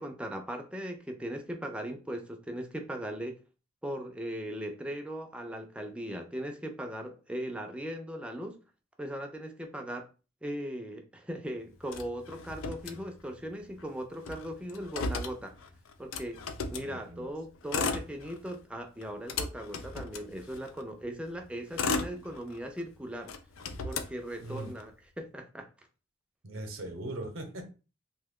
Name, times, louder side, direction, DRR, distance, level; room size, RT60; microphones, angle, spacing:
voice 1, 0.0-3.4 3.8-8.6 9.0-10.1 10.4-15.6 16.0-16.4 16.7-23.3 23.8-25.7, equal, 5° right, 0.4 m, -38 dB
Motor vehicle (road), 11.9-13.5 13.8-13.9 14.1-16.9 17.5-18.6 19.0-20.8 21.4-22.8 23.2-24.8, left 4 dB, 85° left, 0.4 m, -36 dB
voice 2, 16.8-17.3 24.4-24.7 26.4-27.6, right 1 dB, 80° right, 0.7 m, -40 dB
2.9 x 2.2 x 3.5 m
head